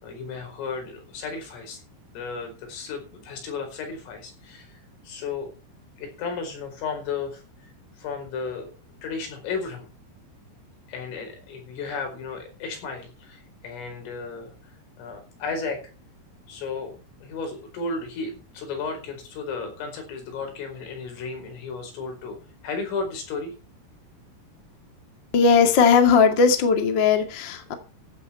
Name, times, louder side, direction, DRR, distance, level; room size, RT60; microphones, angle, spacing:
voice 1, 0.0-1.8 2.1-5.5 6.0-7.7 8.0-8.7 9.0-9.9 10.9-15.8 16.5-16.9 17.2-22.4 22.6-23.5, left 4 dB, 85° left, 4 dB, 7.3 m, -34 dB
voice 2, 25.3-27.7, left 5 dB, 40° left, 6 dB, 1.6 m, -18 dB
15.0 x 9.7 x 4.4 m, 0.34 s
omnidirectional pair, 5.7 m